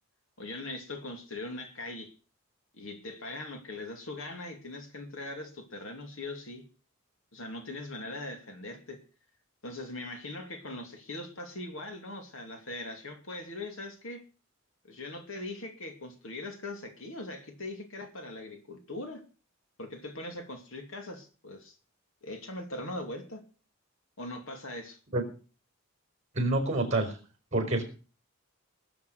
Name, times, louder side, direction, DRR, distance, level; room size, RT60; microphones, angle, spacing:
voice 1, 0.4-2.1 2.7-6.6 7.3-9.0 9.6-14.2 14.8-19.2 19.8-21.8 22.2-23.4 24.2-25.0, left 2 dB, 70° left, 5 dB, 2.7 m, -41 dB
voice 2, 26.3-27.1 27.5-27.8, right 2 dB, 30° right, 4 dB, 4.7 m, -27 dB
20.5 x 7.1 x 6.4 m, 0.37 s
head